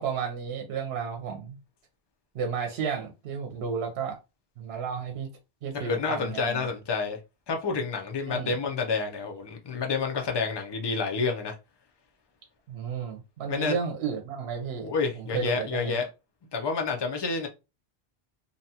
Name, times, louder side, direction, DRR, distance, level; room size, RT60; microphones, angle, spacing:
voice 1, 0.0-1.6 2.3-4.2 4.6-5.3 5.6-6.7 8.2-8.5 12.7-14.9 15.2-16.0, right 6 dB, 80° right, 0.8 m, -32 dB
voice 2, 5.8-7.2 7.5-11.5 13.5-13.8 14.8-16.1 16.5-17.5, left 4 dB, 35° left, 0.4 m, -29 dB
2.6 x 2.2 x 2.7 m
omnidirectional pair, 1.1 m